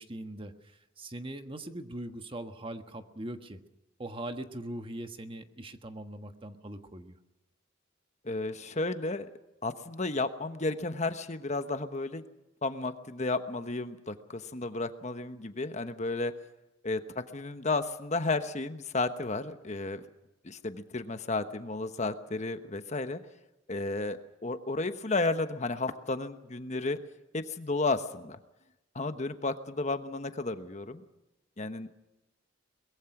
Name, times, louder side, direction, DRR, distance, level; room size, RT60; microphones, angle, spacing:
voice 1, 0.0-3.6 4.0-7.2, right 1 dB, 25° right, 7 dB, 1.4 m, -41 dB
voice 2, 8.2-9.3 9.6-12.2 12.6-16.3 16.8-20.0 20.4-23.2 23.7-27.0 27.3-28.4 28.9-31.0 31.6-31.9, left 3 dB, 35° left, 9 dB, 1.2 m, -33 dB
23.0 x 21.5 x 6.0 m, 0.96 s
head